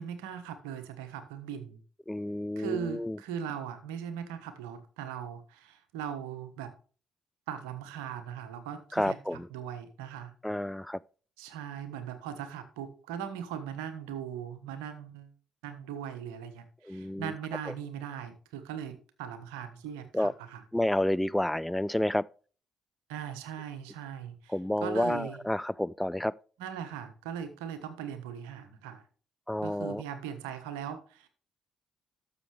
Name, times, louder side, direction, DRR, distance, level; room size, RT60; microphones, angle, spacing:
voice 1, 0.0-1.8 2.6-6.7 7.5-9.2 9.5-10.3 11.4-15.3 15.6-20.6 23.1-24.5 24.8-25.4 26.6-29.0 29.6-31.3, right 8 dB, 80° right, 1.2 m, -39 dB
voice 2, 2.1-3.2 8.9-9.5 10.4-11.0 16.8-17.3 20.1-20.3 20.7-22.3 24.5-26.3 29.5-30.0, left 1 dB, 5° left, 0.3 m, -30 dB
12.5 x 6.8 x 3.4 m
hypercardioid pair, 50°, 0 cm